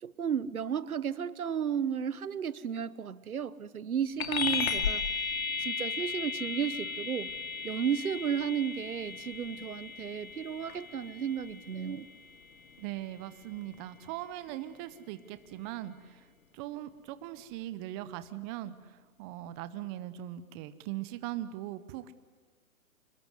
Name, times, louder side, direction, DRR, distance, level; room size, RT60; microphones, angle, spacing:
voice 1, 0.0-5.2 5.6-7.3 7.6-12.1, right 8 dB, 80° right, 18 dB, 1.2 m, -33 dB
sound 1, 4.2-14.0, left 5 dB, 70° left, 2.7 m, -36 dB
voice 2, 12.8-16.3 16.5-22.1, right 14 dB, 20° right, 13 dB, 0.7 m, -40 dB
25.5 x 21.0 x 9.7 m, 1.4 s
hypercardioid pair, 140°, 43 cm